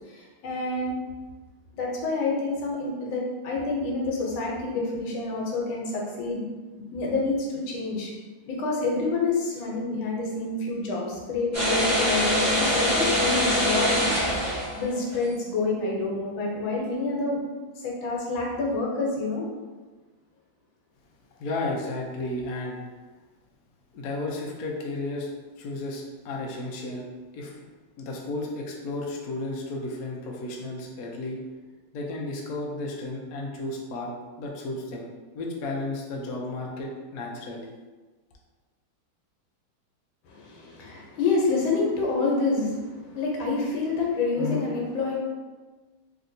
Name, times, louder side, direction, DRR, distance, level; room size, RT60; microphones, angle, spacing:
voice 1, 0.1-0.9 1.7-6.5 6.7-8.1 8.5-17.4 17.8-19.4 40.2-45.2, left 3 dB, 90° left, -2 dB, 1.5 m, -28 dB
sound 1, 11.5-15.2, equal, 20° right, 0.5 m, -24 dB
voice 2, 21.4-22.8 23.9-25.3 25.6-27.1 27.3-27.6 28.0-31.4 31.9-34.1 34.4-35.1 35.3-37.7, left 2 dB, 70° left, -2 dB, 0.8 m, -33 dB
3.3 x 2.8 x 2.6 m, 1.3 s
omnidirectional pair, 2.1 m